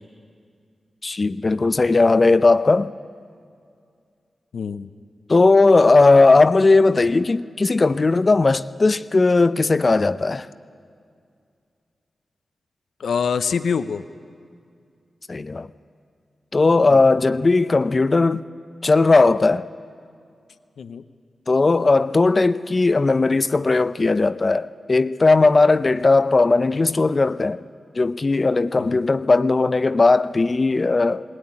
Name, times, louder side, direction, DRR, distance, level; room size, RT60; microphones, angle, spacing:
voice 1, 1.0-2.9 5.3-10.5 15.3-15.7 16.5-18.4 18.8-19.6 21.5-27.6 28.0-31.2, left 3 dB, 45° left, 0.6 m, -17 dB
voice 2, 4.5-4.9 13.0-14.0 16.9-17.0 20.8-21.1 28.8-29.0, left 6 dB, 85° left, 0.6 m, -25 dB
19.0 x 17.5 x 9.8 m
cardioid pair, 55°, 0 cm